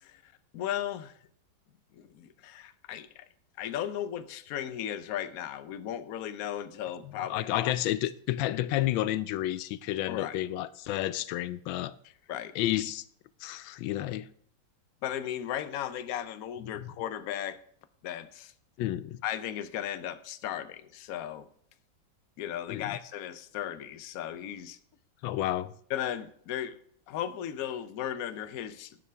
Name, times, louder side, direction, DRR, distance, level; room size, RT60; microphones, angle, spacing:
voice 1, 0.0-1.1 1.9-3.2 3.6-7.7 10.1-10.4 12.3-12.5 15.0-17.6 18.0-18.5 19.2-21.5 22.4-24.8 25.9-26.8 27.1-29.0, left 10 dB, 65° left, 1.0 m, -36 dB
voice 2, 7.0-11.9 12.5-13.0 13.4-14.3 16.8-16.9 18.8-19.2 22.7-23.0 25.2-25.7, left 14 dB, 85° left, 1.3 m, -31 dB
11.5 x 9.9 x 3.4 m
omnidirectional pair, 2.1 m